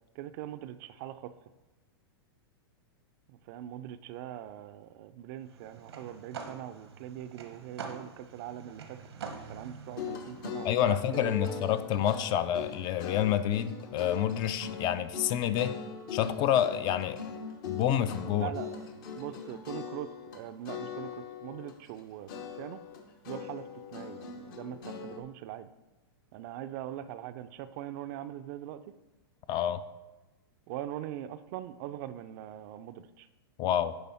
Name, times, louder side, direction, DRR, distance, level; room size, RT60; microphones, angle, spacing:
voice 1, 0.1-1.3 3.3-9.0 9.5-11.7 18.4-22.3 22.6-22.8 23.3-25.7 26.3-28.9 30.7-33.3, right 12 dB, 50° right, 12 dB, 0.4 m, -42 dB
sound 1, 5.4-10.9, right 5 dB, 90° right, 0.9 m, -46 dB
sound 2, 9.9-20.4 20.7-22.0 22.3-25.2, left 5 dB, 55° left, 1.1 m, -41 dB
voice 2, 10.6-15.8 16.1-17.2 17.7-18.5 29.5-29.8 33.6-34.0, left 10 dB, 35° left, 13 dB, 0.4 m, -28 dB
9.6 x 3.4 x 4.2 m, 1.1 s
hypercardioid pair, 120°, 13 cm